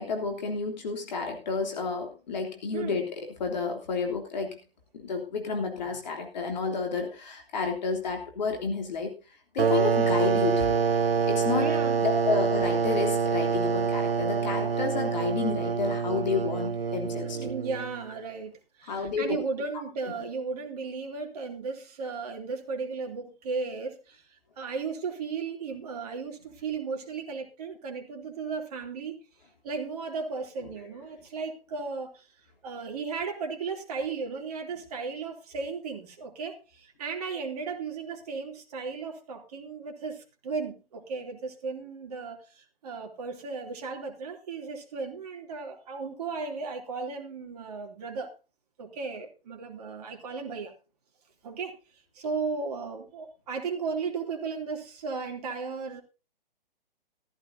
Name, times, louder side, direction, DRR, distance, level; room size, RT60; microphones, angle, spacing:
voice 1, 0.0-4.6 5.0-10.8 11.3-11.7 12.0-17.5 18.9-19.4, left 4 dB, 45° left, 3.1 m, -31 dB
sound 1, 9.6-18.0, right 6 dB, 80° right, 0.6 m, -26 dB
voice 2, 11.5-12.0 17.2-18.5 18.8-29.2 29.6-32.3 32.6-48.3 48.8-50.7 51.4-51.8 52.1-56.0, right 4 dB, 40° right, 2.9 m, -35 dB
15.0 x 14.5 x 2.7 m
figure-of-eight pair, 130°, 29 cm